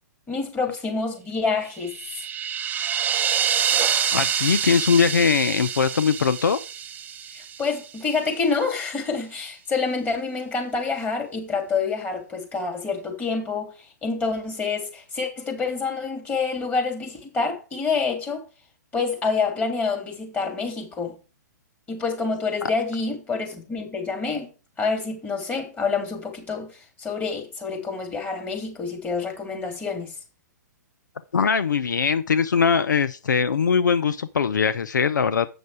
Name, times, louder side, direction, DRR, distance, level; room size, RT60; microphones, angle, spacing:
voice 1, 0.3-1.9 7.3-13.7 14.0-18.5 18.9-21.2 21.9-24.5 24.8-30.1, left 4 dB, 15° left, 2.9 m, -27 dB
sound 1, 1.7-8.0, right 8 dB, 15° right, 0.4 m, -26 dB
voice 2, 4.1-6.6 22.6-22.7 31.3-35.5, left 6 dB, 80° left, 0.6 m, -21 dB
8.0 x 6.5 x 4.8 m
hypercardioid pair, 120°, 10 cm